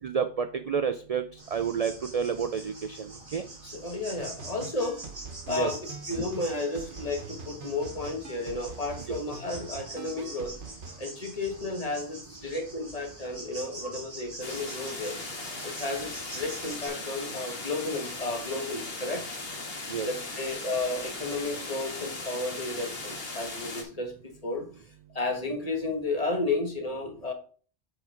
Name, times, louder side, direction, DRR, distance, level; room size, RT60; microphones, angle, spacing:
voice 1, 0.0-1.2 1.5-3.4 5.6-5.7 19.9-20.1, right 6 dB, 50° right, 9 dB, 0.5 m, -29 dB
sound 1, 1.4-16.9, right 2 dB, 20° right, 2.9 m, -45 dB
voice 2, 3.6-5.0 5.5-10.5 11.0-15.2 15.6-19.2 20.0-24.7 25.1-27.3, left 2 dB, 35° left, 2 dB, 1.5 m, -33 dB
sound 2, 4.2-11.0, right 5 dB, 90° right, 1.4 m, -44 dB
sound 3, 14.4-23.8, left 3 dB, 60° left, 1.8 m, -38 dB
7.8 x 4.5 x 4.9 m, 0.42 s
omnidirectional pair, 1.1 m